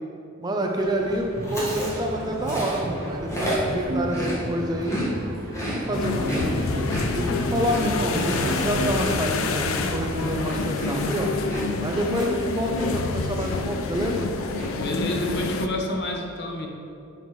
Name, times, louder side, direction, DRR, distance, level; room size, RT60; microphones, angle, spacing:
voice 1, 0.4-5.3 5.7-6.6 7.1-11.3 11.8-14.3, right 1 dB, 20° right, 2 dB, 0.5 m, -28 dB
sound 1, 0.8-9.2, right 1 dB, 45° right, 0.9 m, -32 dB
Chewing mastication, 1.4-5.1 5.4-13.1 13.4-13.7 14.0-14.7, equal, 15° left, 1.6 m, -32 dB
sound 2, 5.9-15.7, left 4 dB, 75° left, 0.5 m, -28 dB
voice 2, 7.2-7.6 14.7-16.7, left 1 dB, 55° left, 2 dB, 0.9 m, -29 dB
10.5 x 5.3 x 3.2 m, 2.6 s
head